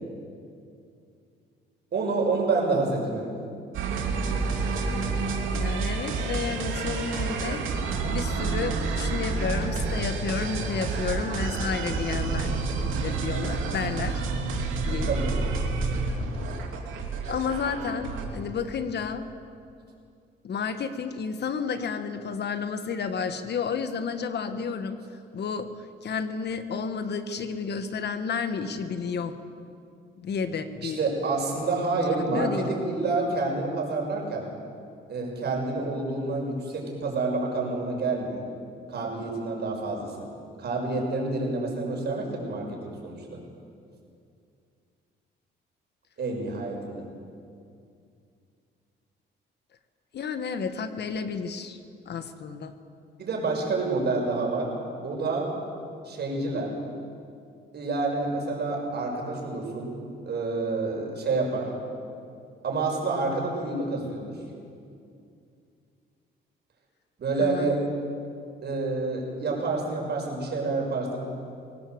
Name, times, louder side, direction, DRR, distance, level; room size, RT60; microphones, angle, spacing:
voice 1, 1.9-3.3 15.1-15.3 30.8-34.4 35.1-38.4 38.9-40.1 40.6-43.4 46.2-47.0 53.2-54.7 55.0-55.5 56.0-56.7 57.7-59.9 60.3-61.7 62.6-64.4 67.2-67.8 68.6-71.2, right 3 dB, 55° right, 0 dB, 6.2 m, -28 dB
sound 1, 3.7-18.3, right 4 dB, 85° right, 2.9 m, -29 dB
voice 2, 5.5-7.6 8.1-12.6 12.8-14.2 14.8-15.1 17.3-19.3 20.4-25.0 25.3-25.7 26.0-29.3 30.2-31.0 32.3-32.8 50.1-51.8 52.1-52.7 67.4-67.8, left 6 dB, 55° left, 9 dB, 1.5 m, -31 dB
22.5 x 18.0 x 7.9 m, 2.5 s
cardioid pair, 90°, 20 cm